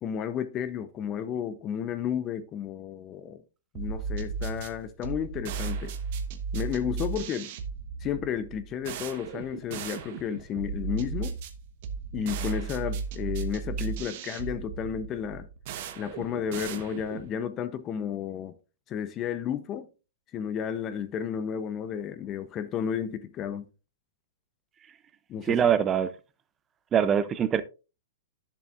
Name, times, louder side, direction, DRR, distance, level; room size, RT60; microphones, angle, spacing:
voice 1, 0.0-3.4 3.7-5.9 6.5-7.5 8.0-11.4 12.1-15.5 16.0-18.5 18.9-19.9 20.3-23.6 25.3-25.6, left 8 dB, 30° left, 0.7 m, -32 dB
sound 1, 3.7-17.4, right 5 dB, 50° right, 1.0 m, -35 dB
voice 2, 25.4-26.1 26.9-27.6, right 8 dB, 20° right, 0.5 m, -23 dB
10.5 x 7.0 x 2.5 m
hypercardioid pair, 130°, 0 cm